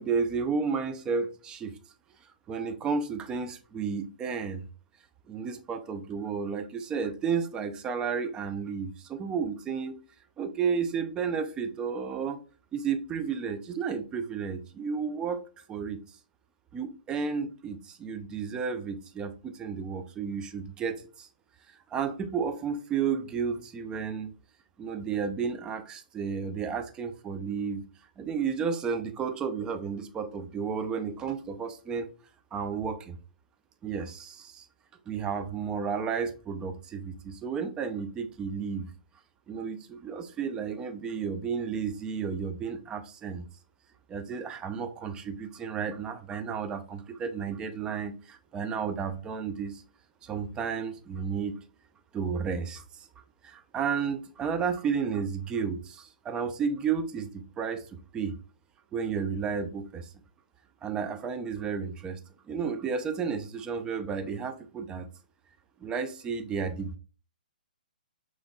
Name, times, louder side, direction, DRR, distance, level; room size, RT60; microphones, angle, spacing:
voice 1, 0.0-1.8 2.5-4.6 5.3-10.0 10.4-12.4 12.7-16.0 16.7-21.3 21.9-24.3 24.8-27.8 28.2-32.1 32.5-33.2 33.8-34.7 35.1-38.9 39.5-43.5 44.1-49.8 50.2-51.6 52.1-53.1 53.4-57.9 58.1-58.4 58.9-60.1 60.8-62.2 62.4-65.1 65.8-67.0, right 6 dB, 15° right, 0.4 m, -32 dB
5.1 x 3.1 x 2.3 m
figure-of-eight pair, 130°, 5 cm